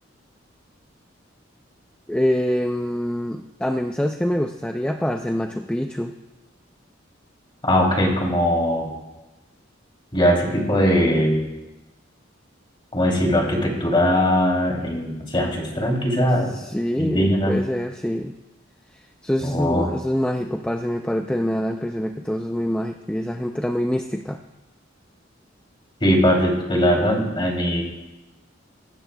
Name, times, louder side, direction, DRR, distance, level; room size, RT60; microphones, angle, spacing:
voice 1, 2.1-6.1 16.5-18.3 19.2-24.4, equal, 5° left, 4 dB, 0.4 m, -25 dB
voice 2, 7.6-8.9 10.1-11.4 12.9-16.5 17.0-17.6 19.4-19.9 26.0-27.8, equal, 25° left, -1 dB, 2.9 m, -20 dB
23.0 x 12.0 x 2.3 m, 1.0 s
head